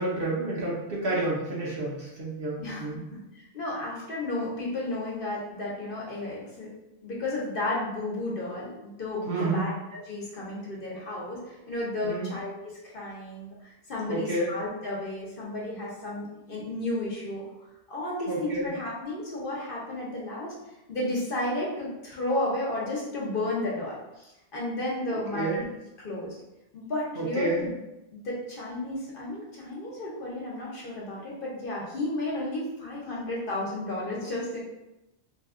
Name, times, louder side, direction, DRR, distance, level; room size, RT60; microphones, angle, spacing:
voice 1, 0.0-3.0 9.3-9.6 12.0-12.3 14.1-14.5 18.3-18.7 25.3-25.6 27.2-27.6, right 2 dB, 60° right, -5 dB, 1.0 m, -29 dB
voice 2, 2.6-6.7 7.0-17.4 17.9-20.5 20.9-25.7 26.0-26.3 26.7-27.7 28.1-34.6, left 2 dB, 55° left, -5 dB, 0.9 m, -33 dB
2.8 x 2.2 x 3.5 m, 0.93 s
omnidirectional pair, 1.2 m